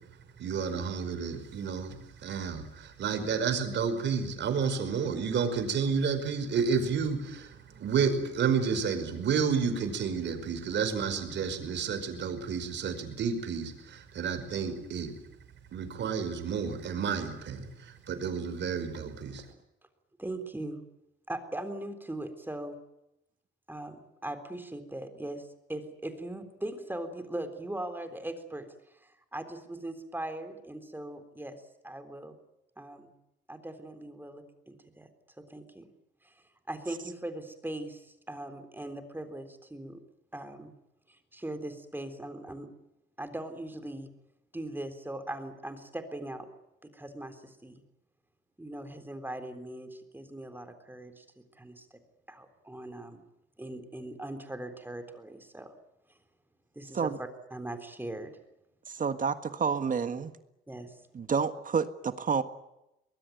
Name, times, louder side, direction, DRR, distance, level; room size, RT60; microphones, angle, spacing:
voice 1, 0.4-15.1 15.7-19.5, right 6 dB, 65° right, 9 dB, 5.3 m, -31 dB
voice 2, 20.2-20.8 21.3-22.8 23.7-32.4 32.8-33.1 33.5-35.1 35.4-35.9 36.2-36.3 36.7-40.0 40.3-40.7 41.1-42.7 43.2-44.1 44.5-46.5 46.8-47.8 48.6-51.3 51.6-51.9 52.3-53.2 53.6-55.7 56.8-58.3 60.7-61.0, right 1 dB, 10° right, 7 dB, 3.6 m, -40 dB
voice 3, 58.9-60.3 61.1-62.4, right 6 dB, 40° right, 10 dB, 1.6 m, -29 dB
22.5 x 21.5 x 9.3 m, 0.89 s
cardioid pair, 90°, 20 cm